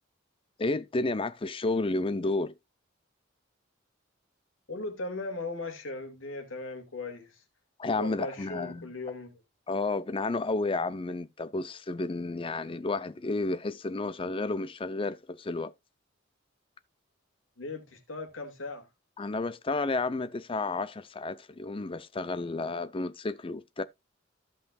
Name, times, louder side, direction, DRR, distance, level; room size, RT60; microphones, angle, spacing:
voice 1, 0.6-2.5 7.8-8.9 9.7-15.7 19.2-23.8, left 3 dB, 25° left, 0.5 m, -31 dB
voice 2, 4.7-7.4 7.9-9.4 17.6-18.9, left 2 dB, 80° left, 2.2 m, -38 dB
14.5 x 5.6 x 2.3 m
head